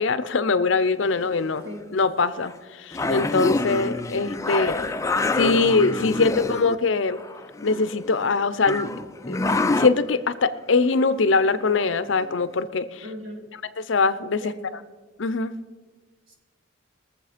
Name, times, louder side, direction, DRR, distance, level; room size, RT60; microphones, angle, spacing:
voice 1, 0.0-1.6 1.9-4.9 5.3-7.2 7.6-8.9 9.3-9.4 9.8-13.0 13.9-14.5 15.2-15.5, left 4 dB, 65° left, 14 dB, 0.6 m, -22 dB
sound 1, 1.2-1.6 2.4-2.5 2.9-6.8 7.1-8.3 8.7-9.9 11.7-11.8 12.2-12.3, left 2 dB, 15° left, 0.4 m, -27 dB
voice 2, 1.3-2.0 4.2-4.6 13.0-13.6 14.4-14.6 16.3-16.4, left 1 dB, 85° right, 1 dB, 2.8 m, -42 dB
21.5 x 7.4 x 5.1 m, 1.4 s
head